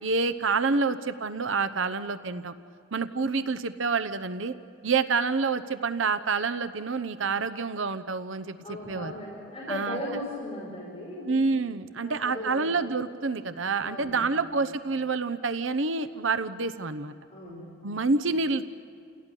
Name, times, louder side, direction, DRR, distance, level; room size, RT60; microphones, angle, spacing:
voice 1, 0.0-2.5 2.9-4.5 4.8-8.6 8.9-9.1 9.7-10.0 11.3-17.1 17.8-18.7, right 4 dB, 80° right, 12 dB, 0.9 m, -28 dB
voice 2, 8.6-11.5 12.0-12.8 13.8-14.4 17.3-17.9, left 1 dB, 30° left, -6 dB, 5.8 m, -37 dB
29.5 x 17.5 x 10.0 m, 2.5 s
head